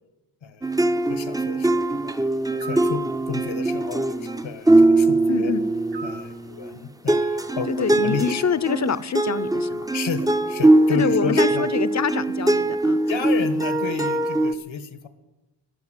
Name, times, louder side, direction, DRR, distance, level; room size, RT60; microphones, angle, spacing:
voice 1, 0.4-5.5 6.0-8.4 9.9-11.7 13.1-15.1, left 6 dB, 90° left, 11 dB, 1.5 m, -32 dB
sound 1, 0.6-6.7 7.1-14.5, right 2 dB, 10° right, 0.5 m, -21 dB
sound 2, 2.6-3.0 5.9-6.3, right 4 dB, 70° right, 1.2 m, -37 dB
voice 2, 5.3-5.6 7.6-9.9 10.9-13.0, left 7 dB, 40° left, 17 dB, 0.6 m, -26 dB
12.0 x 11.0 x 9.1 m, 1.0 s
wide cardioid pair, 110°, 45 cm